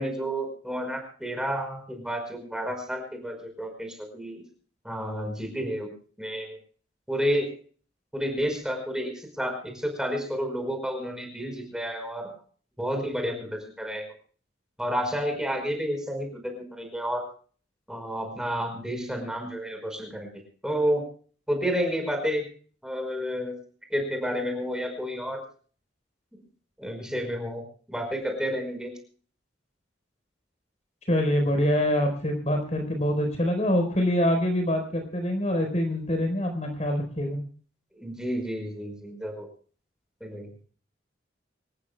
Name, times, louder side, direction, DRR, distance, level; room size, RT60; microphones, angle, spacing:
voice 1, 0.0-4.5 4.8-5.9 6.2-6.6 7.1-7.5 8.1-12.4 12.8-14.1 14.8-17.2 17.9-20.3 20.6-21.1 21.5-22.4 22.8-23.5 23.9-25.4 26.3-26.4 26.8-27.6 27.9-28.9 37.9-39.5 40.2-40.5, equal, 5° right, 4 dB, 5.0 m, -30 dB
voice 2, 31.1-37.4, left 1 dB, 40° left, 4 dB, 4.4 m, -25 dB
27.0 x 14.5 x 2.3 m, 0.43 s
head